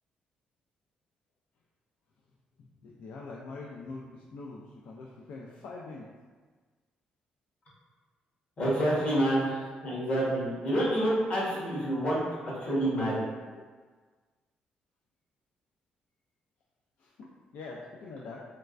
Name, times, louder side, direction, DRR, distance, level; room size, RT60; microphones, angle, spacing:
voice 1, 2.8-6.1 9.5-9.6 11.5-11.7 17.0-18.4, left 3 dB, 65° left, -3 dB, 0.3 m, -44 dB
voice 2, 8.6-13.2, right 1 dB, 40° left, -7 dB, 1.1 m, -28 dB
3.3 x 3.1 x 2.4 m, 1.4 s
cardioid pair, 160°, 3 cm